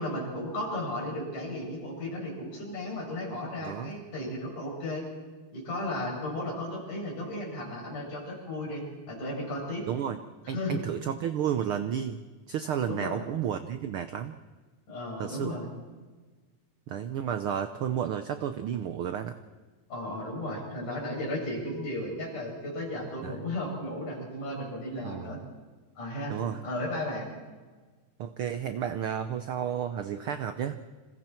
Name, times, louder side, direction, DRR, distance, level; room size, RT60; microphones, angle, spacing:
voice 1, 0.0-5.0 5.5-9.9 10.5-10.8 12.9-13.3 14.9-15.7 19.9-25.4 26.0-26.4 26.6-27.3, left 1 dB, 90° left, -2 dB, 9.0 m, -34 dB
voice 2, 3.6-3.9 9.9-10.2 10.5-12.2 12.5-14.3 15.2-15.6 16.9-19.4 23.2-23.3 25.0-25.4 26.3-26.6 28.2-30.8, right 9 dB, 80° right, 9 dB, 1.2 m, -32 dB
29.0 x 27.0 x 4.5 m, 1.3 s
omnidirectional pair, 3.5 m